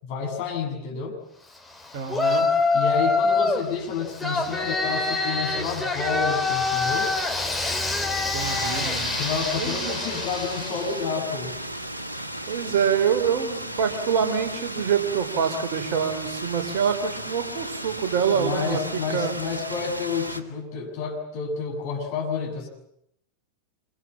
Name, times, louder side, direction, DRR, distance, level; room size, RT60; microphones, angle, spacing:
voice 1, 0.0-1.2 2.7-7.1 9.1-11.6 18.3-22.7, left 5 dB, 45° left, 1 dB, 7.2 m, -30 dB
voice 2, 1.9-2.5 8.1-9.1 9.6-10.0 12.5-18.8 19.1-19.3, right 7 dB, 50° right, 6 dB, 3.7 m, -26 dB
Yell, 2.1-3.7 4.2-10.9, left 3 dB, 5° left, 3.1 m, -25 dB
sound 1, 8.4-20.4, right 1 dB, 80° right, 1.9 m, -35 dB
26.5 x 24.0 x 7.5 m, 0.75 s
figure-of-eight pair, 90°, 0 cm